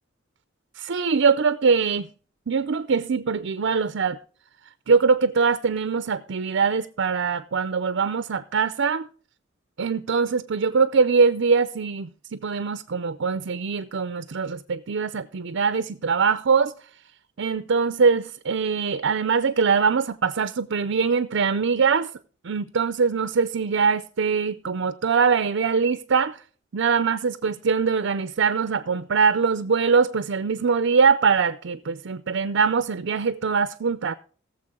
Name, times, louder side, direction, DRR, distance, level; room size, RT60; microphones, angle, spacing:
voice 1, 0.8-2.1 2.5-4.2 4.9-9.1 9.8-16.7 17.4-22.1 22.4-26.4 26.7-34.1, right 5 dB, 60° right, 0.5 m, -22 dB
18.5 x 7.2 x 3.7 m
head